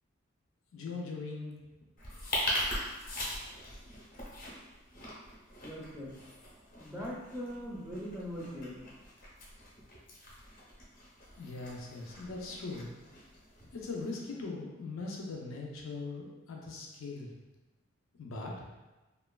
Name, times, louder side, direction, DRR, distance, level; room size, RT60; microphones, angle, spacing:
voice 1, 0.7-1.6 11.4-12.9 13.7-17.3 18.2-18.6, left 3 dB, 85° left, -1 dB, 0.5 m, -40 dB
sound 1, 2.0-14.1, left 1 dB, 45° left, 0.7 m, -41 dB
voice 2, 5.6-6.1 6.8-8.8, equal, 5° right, -5 dB, 0.4 m, -41 dB
2.9 x 2.1 x 2.3 m, 1.1 s
head